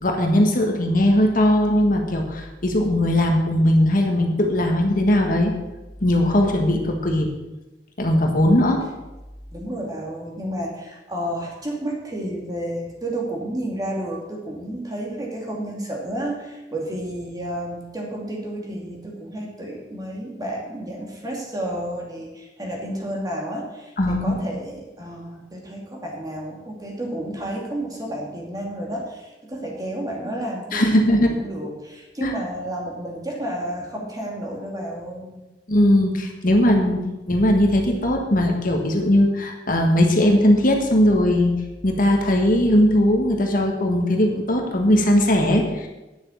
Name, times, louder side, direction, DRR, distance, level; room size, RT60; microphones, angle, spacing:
voice 1, 0.0-5.5 6.0-7.3 8.0-8.8 24.0-24.4 30.7-31.3 32.2-32.3 35.7-37.0 37.3-41.5 41.8-45.9, left 1 dB, 50° left, 2 dB, 1.5 m, -19 dB
voice 2, 9.5-35.4 36.8-37.3, right 1 dB, 20° right, -1 dB, 2.6 m, -31 dB
9.7 x 7.3 x 7.2 m, 1.0 s
head